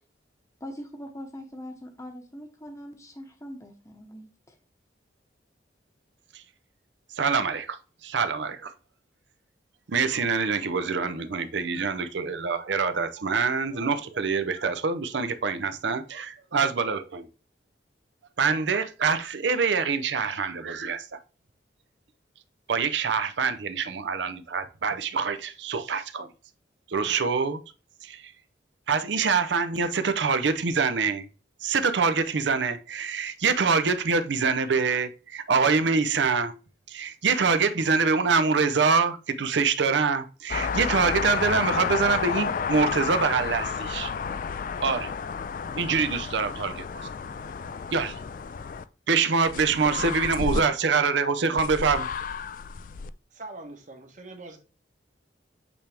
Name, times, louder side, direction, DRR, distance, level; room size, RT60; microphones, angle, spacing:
voice 1, 0.6-4.6, equal, 15° left, 0.9 m, -42 dB
voice 2, 7.2-7.8 8.0-8.7 9.9-17.3 18.4-21.2 22.7-26.3 26.9-27.6 28.0-28.3 28.9-31.3 31.6-36.5 36.9-44.1 44.8-45.1 45.7-47.1 47.9-48.1 49.1-52.1, right 5 dB, 75° right, 0.6 m, -25 dB
sound 1, 40.5-48.8 49.5-50.6 51.6-53.1, left 6 dB, 45° left, 0.3 m, -31 dB
voice 3, 53.3-54.6, right 2 dB, 40° right, 1.2 m, -42 dB
8.4 x 3.4 x 3.3 m
head